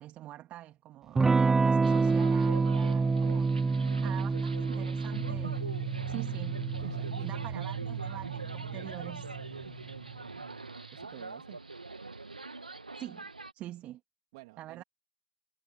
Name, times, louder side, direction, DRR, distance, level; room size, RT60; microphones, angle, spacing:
voice 1, 0.0-5.6 6.1-6.8 7.2-9.4 13.0-13.3 13.5-14.0 14.6-14.8, right 14 dB, 30° right, 3.1 m, -45 dB
Electric guitar / Strum, 1.2-9.5, right 4 dB, 10° right, 0.3 m, -28 dB
sound 1, 1.8-13.5, right 3 dB, 90° right, 2.0 m, -44 dB
voice 2, 4.6-4.9 6.8-7.3 10.9-11.6 14.3-14.8, right 23 dB, 50° right, 2.7 m, -51 dB
sound 2, 5.1-11.1, right 7 dB, 75° right, 1.0 m, -39 dB
figure-of-eight pair, 105°, 4 cm